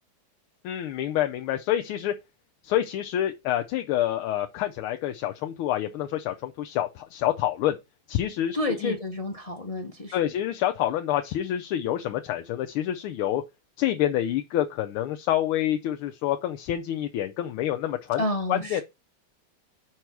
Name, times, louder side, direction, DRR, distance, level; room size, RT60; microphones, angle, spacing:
voice 1, 0.6-2.1 2.6-7.8 8.1-8.6 8.8-8.9 10.1-13.4 13.8-18.2 18.5-18.8, left 12 dB, 85° left, 1.5 m, -27 dB
voice 2, 8.5-10.2 18.1-18.8, left 1 dB, 40° left, 0.5 m, -30 dB
5.4 x 4.6 x 5.9 m
omnidirectional pair, 2.3 m